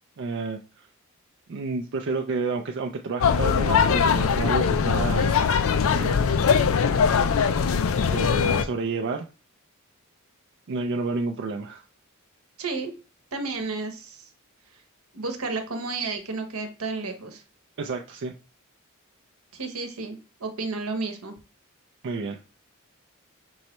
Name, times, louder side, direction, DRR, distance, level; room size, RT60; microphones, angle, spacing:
voice 1, 0.2-0.9 1.5-5.4 5.8-6.9 8.1-9.3 10.7-11.8 17.8-18.3 22.0-22.4, right 3 dB, 55° right, 4 dB, 0.4 m, -30 dB
sound 1, 3.2-8.6, left 6 dB, 65° left, 0.4 m, -21 dB
voice 2, 12.6-12.9 13.3-14.3 15.1-17.4 19.5-21.4, right 3 dB, 75° right, 6 dB, 1.0 m, -32 dB
5.4 x 3.2 x 3.0 m, 0.34 s
head